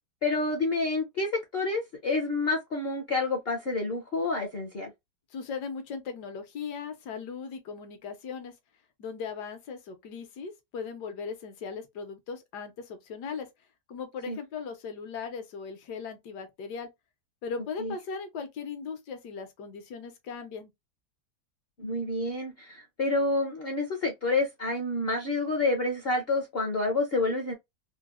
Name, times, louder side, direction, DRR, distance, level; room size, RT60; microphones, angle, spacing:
voice 1, 0.2-4.9 14.3-14.4 17.8-17.9 21.8-27.5, left 3 dB, 55° left, 0.7 m, -28 dB
voice 2, 5.3-8.5 9.0-13.5 13.9-16.9 17.4-20.7, left 5 dB, 75° left, 1.4 m, -38 dB
3.8 x 2.0 x 2.3 m
omnidirectional pair, 1.8 m